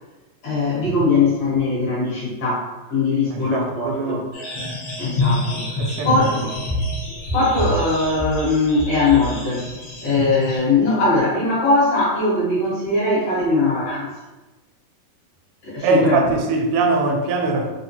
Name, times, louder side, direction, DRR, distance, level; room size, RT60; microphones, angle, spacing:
voice 1, 0.4-4.3 5.0-6.6 7.3-9.7 10.0-14.1 15.6-16.3, left 3 dB, 60° left, -8 dB, 1.9 m, -20 dB
voice 2, 3.3-4.2 5.8-6.1 15.8-17.7, right 3 dB, 85° right, 3 dB, 2.0 m, -21 dB
sound 1, 4.3-10.6, left 1 dB, 85° left, 1.1 m, -26 dB
5.1 x 2.2 x 2.7 m, 1.1 s
omnidirectional pair, 3.7 m